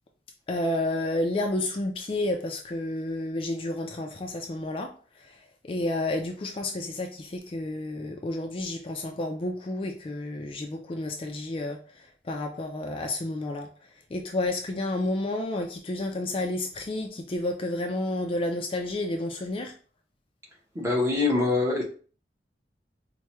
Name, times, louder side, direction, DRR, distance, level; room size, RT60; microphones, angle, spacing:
voice 1, 0.5-13.7 14.1-19.7, left 2 dB, 30° left, 0.4 m, -31 dB
voice 2, 20.7-21.8, left 3 dB, 15° right, 0.9 m, -24 dB
4.5 x 2.2 x 3.0 m
head